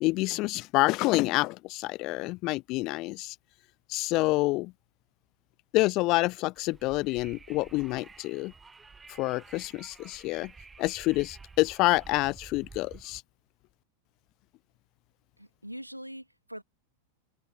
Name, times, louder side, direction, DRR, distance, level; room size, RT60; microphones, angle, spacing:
voice 1, 0.0-3.3 3.9-4.7 5.7-8.5 9.2-10.5 10.8-13.2, left 21 dB, 40° left, 0.6 m, -27 dB
Wind, 6.5-13.2, right 4 dB, 15° right, 1.1 m, -51 dB
voice 2, 15.4-16.6, equal, 90° right, 3.0 m, -42 dB
figure-of-eight pair, 90°, 0 cm